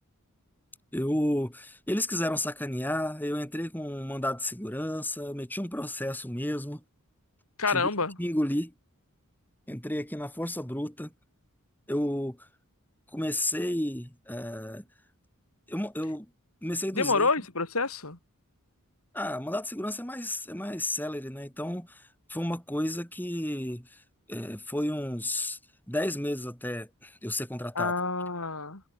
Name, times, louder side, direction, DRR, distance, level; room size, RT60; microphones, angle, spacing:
voice 1, 0.9-6.8 7.7-7.9 8.2-8.7 9.7-11.1 11.9-12.5 13.1-14.8 15.7-16.3 16.6-17.3 19.1-22.0 22.3-23.9 24.3-25.6 25.9-27.9, left 1 dB, 10° left, 3.9 m, -32 dB
voice 2, 7.6-8.1 16.9-18.2 27.8-28.9, left 4 dB, 70° left, 3.6 m, -27 dB
head